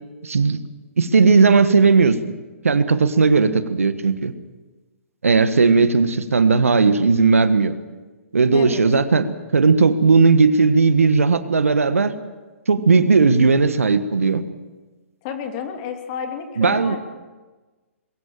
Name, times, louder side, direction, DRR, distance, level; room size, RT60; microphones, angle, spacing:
voice 1, 0.2-0.6 1.0-2.4 2.6-4.3 5.2-7.7 8.3-12.1 12.7-14.4 16.6-17.0, right 4 dB, 75° right, 11 dB, 1.5 m, -16 dB
voice 2, 8.5-8.8 15.2-17.0, left 7 dB, 35° left, 5 dB, 2.8 m, -30 dB
22.0 x 17.0 x 7.5 m, 1.3 s
figure-of-eight pair, 130°, 8 cm